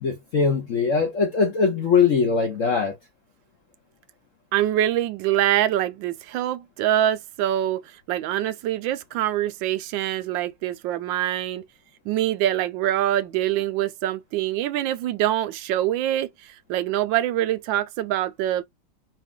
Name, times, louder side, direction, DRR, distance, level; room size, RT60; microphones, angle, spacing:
voice 1, 0.0-3.0, left 5 dB, 60° left, 0.8 m, -21 dB
voice 2, 4.5-11.6 12.0-18.6, right 12 dB, 75° right, 1.2 m, -24 dB
4.9 x 2.5 x 3.6 m
omnidirectional pair, 2.3 m